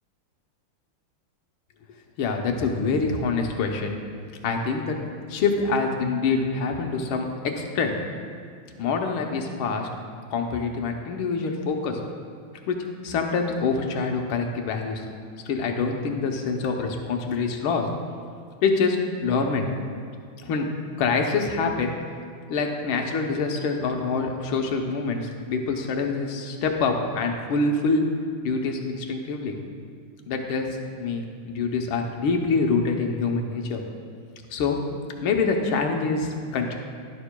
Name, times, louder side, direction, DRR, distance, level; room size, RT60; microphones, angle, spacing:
voice 1, 2.2-4.0 4.4-5.0 5.3-7.3 7.5-8.0 8.8-9.9 10.3-12.0 12.7-12.8 13.0-15.0 15.5-17.9 18.6-19.7 20.4-20.7 21.0-21.9 22.5-28.1 28.4-29.6 30.3-30.7 31.0-33.8 34.5-34.8 35.2-36.8, left 4 dB, 75° left, 3 dB, 1.7 m, -25 dB
11.5 x 11.0 x 2.2 m, 2.2 s
omnidirectional pair, 2.3 m